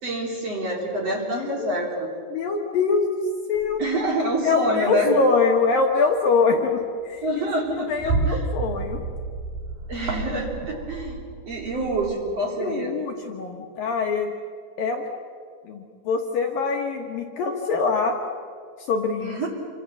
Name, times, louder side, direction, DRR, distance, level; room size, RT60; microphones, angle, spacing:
voice 1, 0.0-2.1 3.8-5.2 7.2-8.5 9.9-13.0 19.2-19.5, right 1 dB, 35° right, 0 dB, 3.9 m, -27 dB
voice 2, 1.1-1.5 2.3-3.2 3.5-3.8 4.4-7.3 7.9-9.0 12.6-14.3 14.8-15.1 15.6-18.2 18.9-19.4, left 4 dB, 60° left, 2 dB, 2.7 m, -24 dB
sound 1, 3.5-4.1 5.2-5.3 5.8-6.1 6.5-6.8 7.2-12.2, right 3 dB, 55° right, 3.2 m, -31 dB
28.5 x 25.5 x 7.1 m, 2.1 s
omnidirectional pair, 5.3 m